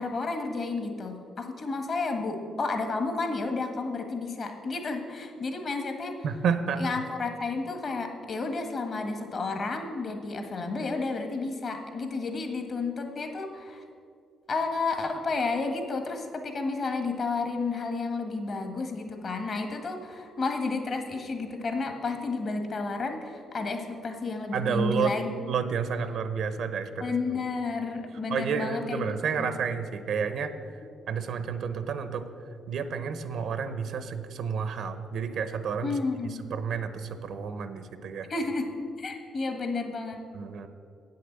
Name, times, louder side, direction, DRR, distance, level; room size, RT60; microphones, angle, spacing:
voice 1, 0.0-6.1 6.8-13.8 14.5-25.3 27.0-29.5 35.8-36.3 38.3-38.7 39.0-40.2, left 3 dB, 50° left, 5 dB, 1.5 m, -31 dB
voice 2, 6.2-6.8 24.5-25.1 25.5-27.0 27.3-27.4 28.3-30.8 31.1-32.2 32.7-36.0 36.2-38.3 40.3-40.7, right 6 dB, 70° right, 11 dB, 0.6 m, -30 dB
8.4 x 6.5 x 8.1 m, 2.4 s
cardioid pair, 90°, 0 cm